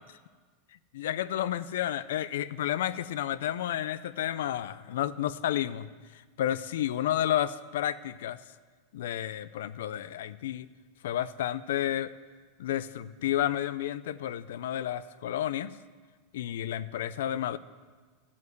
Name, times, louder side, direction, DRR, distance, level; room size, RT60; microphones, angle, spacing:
voice 1, 0.9-5.9 6.4-8.4 8.9-10.7 11.0-12.1 12.6-15.7 16.3-17.6, left 11 dB, 85° left, 15 dB, 0.4 m, -31 dB
13.0 x 5.3 x 7.8 m, 1.5 s
supercardioid pair, 165°, 0 cm